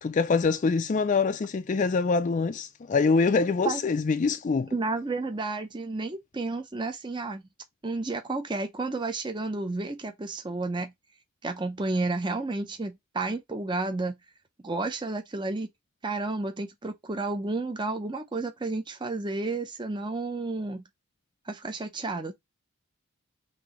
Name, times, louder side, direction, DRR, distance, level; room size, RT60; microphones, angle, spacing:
voice 1, 0.0-4.7, left 4 dB, 35° left, 0.3 m, -24 dB
voice 2, 4.7-7.4 7.8-10.9 11.4-14.2 14.6-15.7 16.0-20.8 21.5-22.3, right 3 dB, 20° right, 0.6 m, -31 dB
5.9 x 2.7 x 2.9 m
head